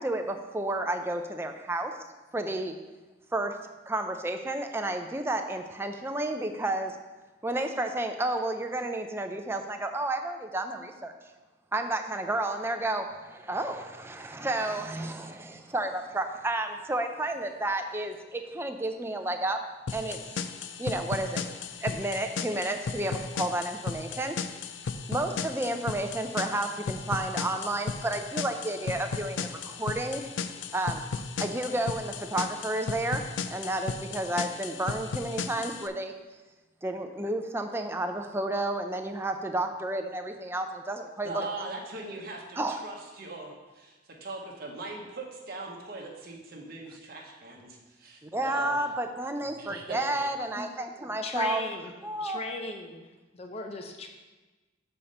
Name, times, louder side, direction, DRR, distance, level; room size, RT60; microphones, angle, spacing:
voice 1, 0.0-1.9 2.3-2.7 3.3-3.5 3.9-6.9 7.4-11.1 11.7-19.6 19.9-20.2 20.8-21.4 21.8-24.4 25.1-30.3 30.7-31.0 31.4-36.1 36.8-41.5 42.6-42.8 48.2-51.6 52.0-52.4, right 2 dB, 15° right, 5 dB, 0.5 m, -31 dB
sound 1, 19.9-35.9, left 5 dB, 85° left, 0.4 m, -35 dB
voice 2, 41.2-48.8 49.6-50.3, right 3 dB, 55° right, -1 dB, 0.9 m, -40 dB
voice 3, 51.2-51.9 52.2-53.1 53.3-54.1, left 3 dB, 35° left, 3 dB, 0.6 m, -36 dB
6.8 x 4.3 x 5.3 m, 1.2 s
head